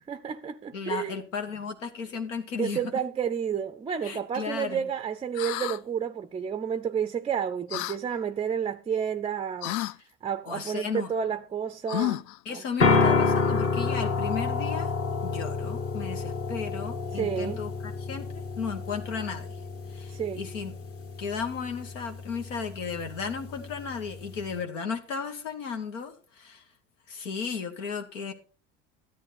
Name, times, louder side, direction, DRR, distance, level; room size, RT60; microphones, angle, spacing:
voice 1, 0.0-1.2 2.6-9.8 10.2-12.3 12.5-12.6 17.1-17.6 20.1-20.4, right 8 dB, 15° right, 0.4 m, -30 dB
voice 2, 0.7-2.8 4.0-4.8 10.5-11.1 12.4-14.9 15.2-17.7 18.0-19.6 19.9-20.7 21.2-26.6 27.1-28.3, left 6 dB, 85° left, 1.4 m, -34 dB
sound 1, 5.3-5.8 7.7-8.0 9.6-10.0 11.9-12.4, left 16 dB, 55° left, 0.4 m, -30 dB
sound 2, 12.8-24.6, left 4 dB, 40° left, 1.5 m, -29 dB
11.0 x 9.2 x 4.1 m
hypercardioid pair, 80°, 37 cm